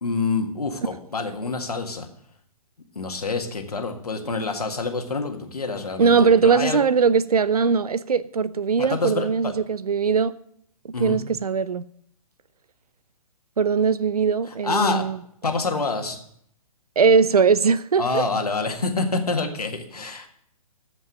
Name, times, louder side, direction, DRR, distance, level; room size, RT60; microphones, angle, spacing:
voice 1, 0.0-2.1 3.0-6.8 8.8-9.5 10.9-11.2 14.6-15.0 15.4-16.2 18.0-20.3, left 3 dB, 80° left, 1.8 m, -27 dB
voice 2, 6.0-10.3 11.0-11.8 13.6-15.2 17.0-18.2, right 5 dB, 75° right, 0.7 m, -20 dB
14.5 x 5.4 x 6.1 m
figure-of-eight pair, 130°, 19 cm